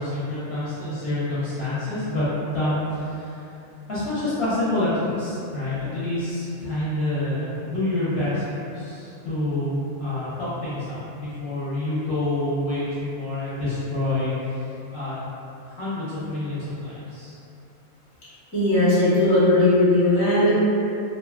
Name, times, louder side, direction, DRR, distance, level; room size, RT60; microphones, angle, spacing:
voice 1, 0.0-2.3 2.5-3.4 3.9-14.6 14.9-15.2 15.6-17.3, left 1 dB, 60° left, -12 dB, 0.7 m, -27 dB
voice 2, 18.5-20.5, left 1 dB, 20° left, -11 dB, 0.5 m, -18 dB
2.5 x 2.4 x 2.3 m, 2.8 s
omnidirectional pair, 1.5 m